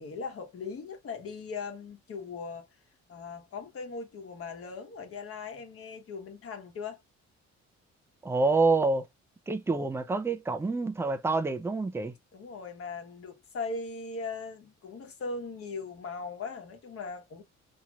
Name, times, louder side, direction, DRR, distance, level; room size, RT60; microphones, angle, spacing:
voice 1, 0.0-2.7 3.1-7.0 12.3-17.4, left 4 dB, 50° left, 1.1 m, -39 dB
voice 2, 8.2-9.1 9.5-12.1, right 3 dB, 10° right, 0.3 m, -27 dB
3.0 x 2.8 x 2.3 m
cardioid pair, 125°, 29 cm